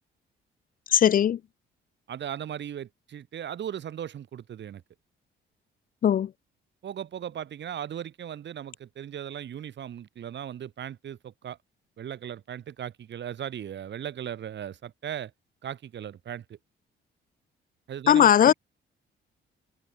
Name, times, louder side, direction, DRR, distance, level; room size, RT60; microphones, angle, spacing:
voice 1, 0.9-1.4 6.0-6.3 18.1-18.5, left 9 dB, 45° left, 0.5 m, -18 dB
voice 2, 2.1-4.8 6.8-11.6 12.0-15.3 15.6-16.6 17.9-18.5, right 9 dB, 65° right, 5.2 m, -37 dB
cardioid pair, 90°, 20 cm